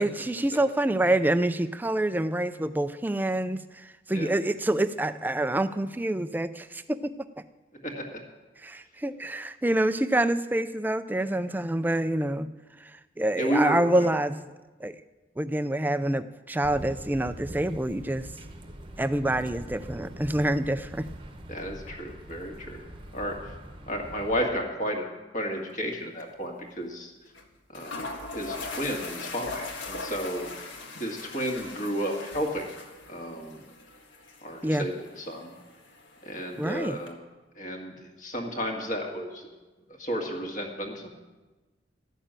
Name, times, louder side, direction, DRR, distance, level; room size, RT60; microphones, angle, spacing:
voice 1, 0.0-7.1 8.6-12.5 12.8-14.5 14.8-15.0 15.4-18.3 19.0-21.1 34.6-34.9 36.6-37.0, right 1 dB, 10° right, 12 dB, 0.3 m, -27 dB
voice 2, 7.7-8.2 13.4-14.1 21.5-22.8 23.1-23.5 23.9-25.1 25.3-27.1 27.7-30.7 31.0-32.7 33.1-33.6 34.4-35.5 36.2-37.2 37.6-39.5 40.0-41.1, equal, 40° left, 2 dB, 1.8 m, -32 dB
sound 1, 16.6-24.5, right 1 dB, 25° right, 1.0 m, -43 dB
sound 2, 25.7-25.9 26.2-26.3 27.3-27.4 27.7-37.1, left 3 dB, 85° left, 1.6 m, -41 dB
13.0 x 6.7 x 8.8 m, 1.2 s
head